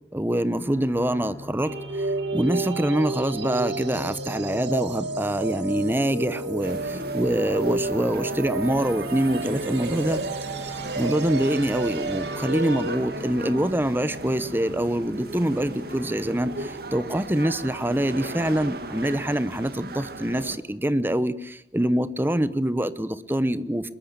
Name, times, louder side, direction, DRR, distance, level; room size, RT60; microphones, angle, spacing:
voice 1, 0.1-10.2 10.6-23.9, right 1 dB, 10° right, 15 dB, 1.0 m, -25 dB
sound 1, 0.5-16.7, left 1 dB, 5° left, 5.3 m, -42 dB
sound 2, 1.7-13.0, right 3 dB, 80° right, 2.7 m, -32 dB
sound 3, 6.6-20.6, right 2 dB, 60° right, 2.1 m, -36 dB
23.0 x 21.5 x 8.3 m, 0.75 s
head